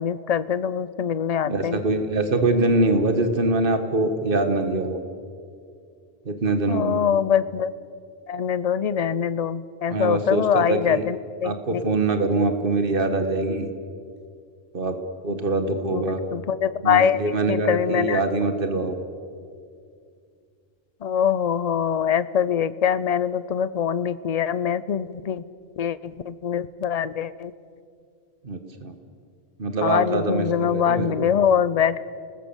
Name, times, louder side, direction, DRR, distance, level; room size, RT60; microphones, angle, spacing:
voice 1, 0.0-1.8 6.7-7.7 8.3-11.8 15.9-16.1 16.3-18.2 21.0-25.4 25.8-27.5 29.8-32.0, left 8 dB, 45° left, 16 dB, 0.7 m, -23 dB
voice 2, 1.4-5.0 6.3-7.0 9.9-11.0 11.4-13.7 14.7-15.0 15.2-16.2 16.8-18.9 28.4-29.0 29.6-31.3, right 2 dB, 60° right, 7 dB, 1.9 m, -23 dB
29.5 x 20.0 x 7.3 m, 2.3 s
omnidirectional pair, 1.0 m